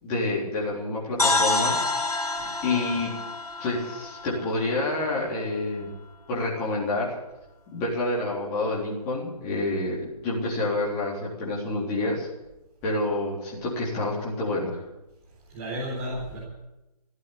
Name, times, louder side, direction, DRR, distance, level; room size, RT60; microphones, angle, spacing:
voice 1, 0.0-1.8 2.6-3.1 3.6-5.9 6.3-7.1 7.7-12.3 12.8-14.8, left 2 dB, 15° left, -5 dB, 3.7 m, -28 dB
sound 1, 1.2-5.1, left 2 dB, 65° left, 4.1 m, -28 dB
voice 2, 2.4-2.8 15.5-16.4, equal, 20° right, -5 dB, 4.0 m, -34 dB
16.5 x 10.5 x 8.3 m, 0.98 s
figure-of-eight pair, 145°, 20 cm